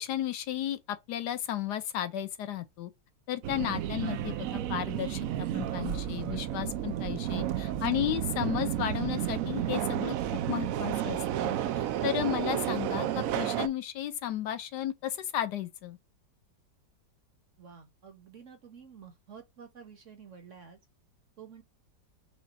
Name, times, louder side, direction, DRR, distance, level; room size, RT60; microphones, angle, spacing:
voice 1, 0.0-2.9 3.3-5.2 5.5-10.1 10.5-16.0, left 11 dB, 70° left, 1.2 m, -34 dB
Subway metro underground, 3.4-13.7, right 11 dB, 80° right, 0.7 m, -32 dB
voice 2, 17.6-20.8 21.4-21.6, right 7 dB, 55° right, 1.0 m, -50 dB
5.1 x 2.3 x 4.0 m
omnidirectional pair, 2.0 m